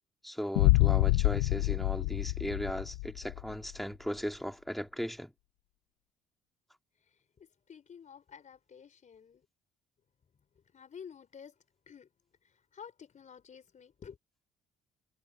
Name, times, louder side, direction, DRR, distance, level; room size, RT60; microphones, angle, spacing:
voice 1, 0.2-5.3, equal, ahead, 2.6 m, -37 dB
sound 1, 0.6-3.5, left 21 dB, 85° left, 1.1 m, -27 dB
voice 2, 7.7-9.4 10.7-11.5 11.9-12.1 12.7-14.2, left 7 dB, 45° left, 3.9 m, -50 dB
hypercardioid pair, 55°, 17 cm